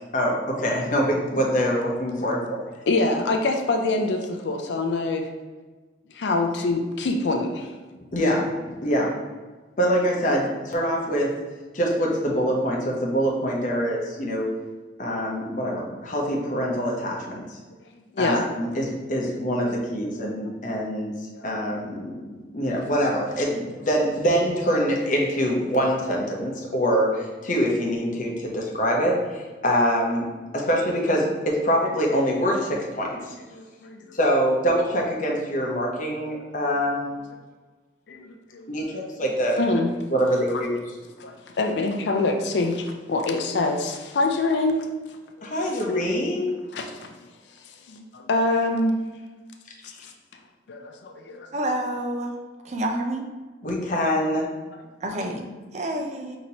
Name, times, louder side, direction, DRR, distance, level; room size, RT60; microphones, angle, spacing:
voice 1, 0.1-2.6 8.1-8.5 8.8-9.1 9.8-11.3 11.7-14.5 15.0-17.6 18.2-21.1 21.4-30.3 30.5-33.3 34.1-37.2 38.7-39.6 40.1-40.7 45.4-46.5 53.6-54.5, equal, 45° left, -1 dB, 0.8 m, -24 dB
voice 2, 2.9-5.3 6.1-7.7 17.3-17.4 18.1-18.4 19.5-19.6 20.1-20.2 21.3-21.4 33.2-34.2 36.6-36.7 38.1-39.0 39.6-39.9 40.5-40.6 41.2-44.9 45.4-45.5 45.8-46.3 46.7-47.1 47.6-49.0 49.8-50.1 50.7-51.5, left 2 dB, 70° left, 3 dB, 0.4 m, -26 dB
voice 3, 51.5-52.4 52.6-53.3 55.0-56.4, right 1 dB, 40° right, 3 dB, 0.4 m, -28 dB
5.3 x 2.9 x 2.8 m, 1.3 s
head